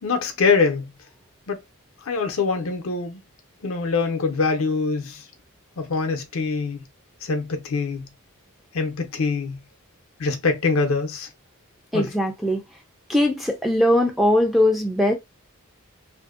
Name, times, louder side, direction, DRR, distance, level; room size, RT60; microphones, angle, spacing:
voice 1, 0.0-0.9 1.5-1.6 2.1-3.2 3.6-5.2 5.8-6.8 7.2-8.1 8.7-9.6 10.2-11.3 11.9-12.1, left 4 dB, 65° left, 0.5 m, -24 dB
voice 2, 11.9-12.6 13.1-15.1, left 1 dB, ahead, 0.4 m, -20 dB
2.6 x 2.1 x 2.3 m
head